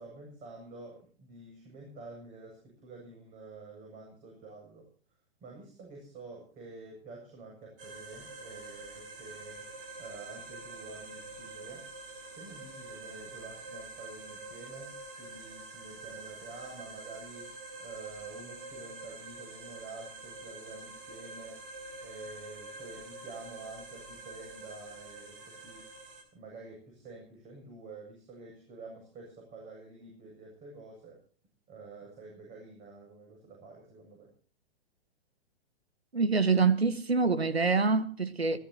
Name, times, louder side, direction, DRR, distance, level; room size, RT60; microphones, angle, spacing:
voice 1, 0.0-4.9 5.4-9.6 10.0-11.9 12.4-17.5 17.8-21.6 22.0-25.9 26.3-31.2 31.7-34.3, right 3 dB, 25° right, 7.8 m, -48 dB
sound 1, 7.8-26.2, right 3 dB, 60° right, 5.1 m, -46 dB
voice 2, 36.1-38.6, right 4 dB, 85° right, 1.6 m, -26 dB
27.5 x 15.5 x 2.9 m
figure-of-eight pair, 110°, 30 cm